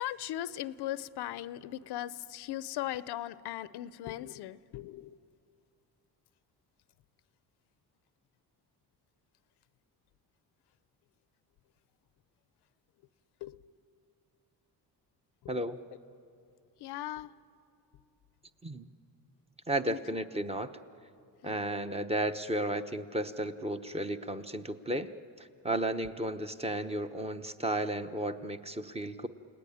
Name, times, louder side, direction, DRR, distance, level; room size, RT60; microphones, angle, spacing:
voice 1, 0.0-5.2 13.4-13.6 16.8-17.3 19.9-20.0 21.4-21.7, left 13 dB, 80° left, 17 dB, 0.7 m, -38 dB
voice 2, 15.5-15.8 18.6-18.9 19.7-20.7 21.4-25.1 25.4-29.3, right 1 dB, 15° right, 9 dB, 0.9 m, -33 dB
29.5 x 18.0 x 9.9 m, 2.6 s
cardioid pair, 110°, 39 cm